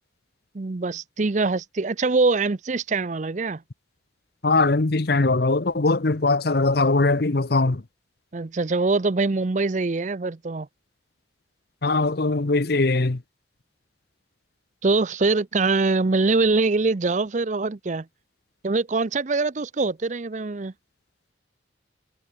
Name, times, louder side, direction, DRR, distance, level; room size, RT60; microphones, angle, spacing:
voice 1, 0.5-3.6 8.3-10.7 14.8-18.1 18.6-20.7, right 3 dB, 40° right, 0.5 m, -23 dB
voice 2, 4.4-7.8 11.8-13.2, left 3 dB, 55° left, 0.9 m, -21 dB
head